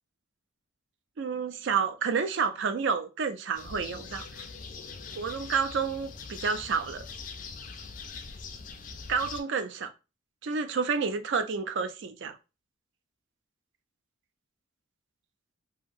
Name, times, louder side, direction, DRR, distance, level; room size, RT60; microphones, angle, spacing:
voice 1, 1.2-4.4 5.1-7.0 9.1-9.9 10.4-12.4, right 5 dB, 60° right, 0.4 m, -30 dB
sound 1, 3.5-9.4, left 5 dB, 40° left, 0.3 m, -42 dB
2.8 x 2.7 x 2.4 m
head